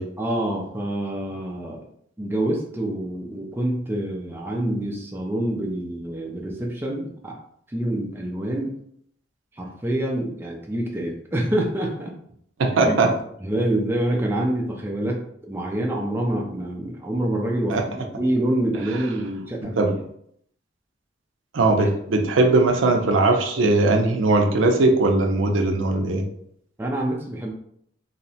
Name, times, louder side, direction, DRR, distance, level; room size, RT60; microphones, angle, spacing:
voice 1, 0.2-1.8 2.2-7.4 7.7-8.8 9.5-12.1 12.8-13.1 13.4-17.8 18.1-20.0 21.8-21.9 26.8-27.5, right 1 dB, 10° right, -1 dB, 0.4 m, -26 dB
voice 2, 12.6-13.1 17.7-17.8 19.8-19.9 21.5-26.2, right 2 dB, 85° right, 4 dB, 0.5 m, -19 dB
2.8 x 2.1 x 2.7 m, 0.69 s
head